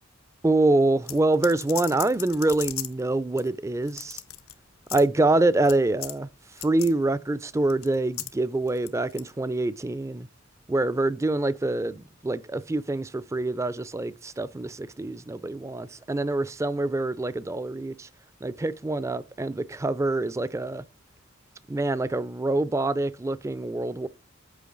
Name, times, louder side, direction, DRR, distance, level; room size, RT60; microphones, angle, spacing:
voice 1, 0.4-4.2 4.9-6.3 6.6-10.3 10.7-18.1 18.4-20.8 21.7-24.1, right 2 dB, 15° right, 0.3 m, -25 dB
sound 1, 1.1-3.0 3.4-3.5 3.8-4.5 4.9-5.1 5.6-5.8 6.0-6.2 6.5-6.9 7.7-8.3 8.7-9.3, left 14 dB, 85° left, 0.8 m, -36 dB
8.3 x 5.2 x 3.8 m
head